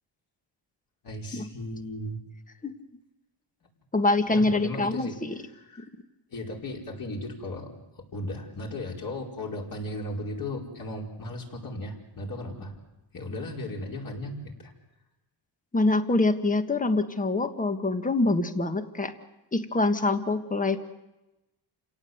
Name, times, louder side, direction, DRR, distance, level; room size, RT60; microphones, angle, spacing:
voice 1, 1.0-2.2 4.3-5.2 5.5-5.9 6.3-12.7 13.1-14.7, left 1 dB, 45° left, -1 dB, 5.0 m, -36 dB
voice 2, 3.9-5.4 15.7-19.1 19.5-20.8, left 2 dB, 15° left, 8 dB, 1.6 m, -25 dB
29.0 x 17.5 x 8.0 m, 1.0 s
cardioid pair, 125°, 47 cm